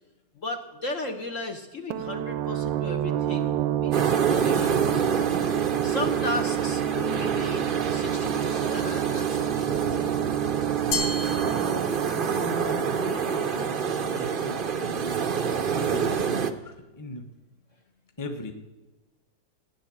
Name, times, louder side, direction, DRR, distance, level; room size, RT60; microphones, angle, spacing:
voice 1, 0.4-4.8 5.8-9.8, left 2 dB, 50° left, 4 dB, 1.4 m, -35 dB
sound 1, 1.9-13.4, right 13 dB, 80° right, 1.3 m, -30 dB
sound 2, 3.9-16.5, right 6 dB, 45° right, 0.7 m, -27 dB
Glass, 10.9-12.4, left 3 dB, 65° left, 2.1 m, -32 dB
voice 2, 11.1-17.3 18.2-18.5, left 1 dB, 10° left, 5 dB, 1.1 m, -39 dB
15.0 x 10.0 x 7.6 m, 1.1 s
omnidirectional pair, 2.0 m